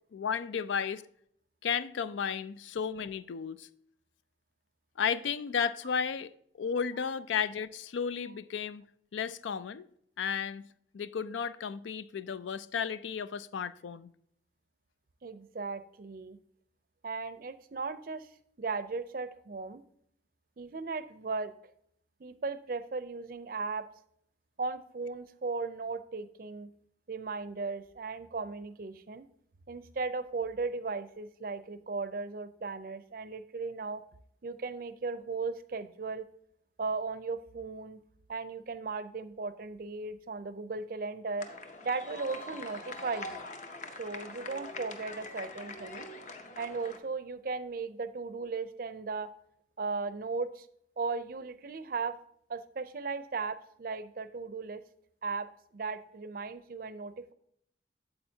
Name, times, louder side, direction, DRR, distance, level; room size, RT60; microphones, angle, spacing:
voice 1, 0.1-1.0 1.6-3.7 5.0-6.3 6.6-8.8 9.1-9.9 10.2-10.6 10.9-14.1, left 6 dB, 90° left, 0.4 m, -33 dB
voice 2, 15.2-16.4 17.0-18.3 18.6-19.8 20.6-21.5 22.2-23.9 24.6-26.7 27.1-29.3 29.7-34.0 34.4-36.3 36.8-38.0 38.3-41.5 41.8-43.5 44.0-46.1 46.6-49.3 49.8-50.7 51.0-52.2 52.5-54.8 55.2-57.3, right 4 dB, 50° right, 0.5 m, -36 dB
sound 1, 41.4-47.0, left 2 dB, 40° left, 0.7 m, -43 dB
8.7 x 7.7 x 2.7 m
head